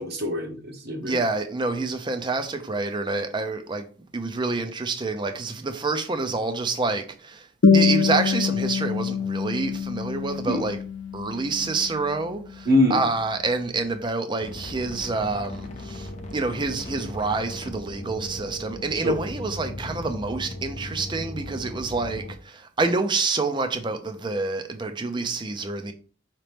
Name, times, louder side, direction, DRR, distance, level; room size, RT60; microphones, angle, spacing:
voice 1, 0.0-1.2 10.4-10.6 12.6-13.0 19.0-19.2 25.2-25.3, left 1 dB, 50° right, 0.9 m, -24 dB
voice 2, 1.0-3.9 4.1-7.5 7.7-10.8 11.1-25.9, right 3 dB, 20° right, 0.4 m, -27 dB
sound 1, 7.6-12.6, left 6 dB, 70° left, 0.6 m, -24 dB
sound 2, 14.4-22.3, left 1 dB, 35° left, 0.6 m, -37 dB
5.1 x 2.9 x 3.3 m
head